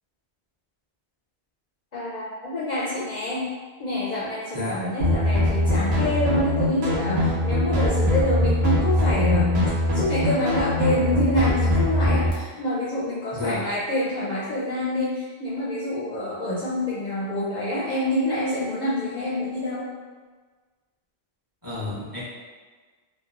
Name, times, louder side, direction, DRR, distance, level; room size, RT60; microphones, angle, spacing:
voice 1, 1.9-3.5 3.8-19.9, left 1 dB, 55° left, -8 dB, 0.5 m, -26 dB
voice 2, 4.5-4.8 13.3-13.7 21.6-22.2, left 2 dB, 20° right, -11 dB, 0.8 m, -30 dB
sound 1, 5.0-12.3, left 1 dB, 75° right, 0.9 m, -22 dB
2.9 x 2.2 x 2.4 m, 1.4 s
omnidirectional pair, 1.1 m